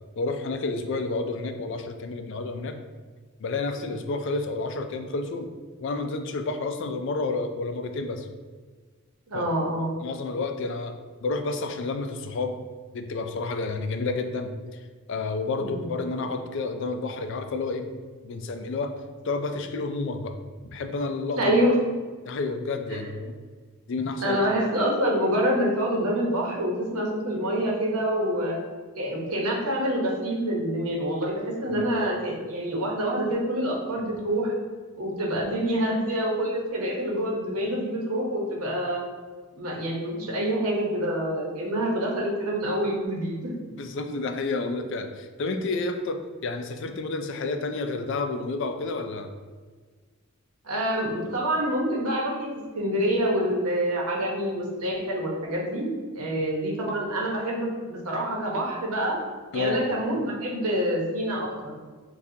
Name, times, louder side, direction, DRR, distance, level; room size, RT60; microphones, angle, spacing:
voice 1, 0.2-2.8 3.4-5.5 5.8-8.3 9.3-9.5 10.0-11.0 11.2-12.6 12.9-14.5 15.1-17.9 18.2-18.9 19.2-20.4 20.7-21.5 22.3-23.4 23.9-24.4 31.7-31.9 43.7-49.3 59.5-59.8, left 3 dB, 55° left, 7 dB, 0.3 m, -30 dB
voice 2, 9.3-10.0 15.6-15.9 21.4-21.7 24.2-28.6 29.0-34.5 35.0-39.0 39.6-43.5 50.6-52.5 52.7-59.2 59.5-61.7, equal, 85° right, -2 dB, 1.0 m, -26 dB
6.6 x 2.4 x 2.7 m, 1.5 s
head